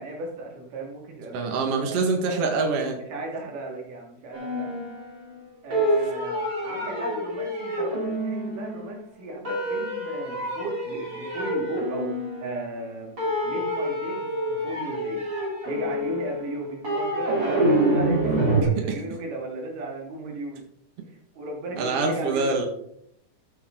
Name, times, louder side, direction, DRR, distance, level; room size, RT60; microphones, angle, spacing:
voice 1, 0.0-2.0 3.1-4.8 5.6-12.1 12.4-15.2 15.7-20.7 21.1-22.7, right 2 dB, 85° right, -1 dB, 4.2 m, -36 dB
voice 2, 1.3-3.0 21.8-22.7, right 3 dB, 50° right, 2 dB, 2.7 m, -25 dB
sound 1, 4.3-5.4 5.7-9.0 9.4-12.9 13.2-18.6, right 1 dB, 30° right, 4.0 m, -27 dB
14.5 x 8.5 x 3.9 m, 0.71 s
omnidirectional pair, 3.6 m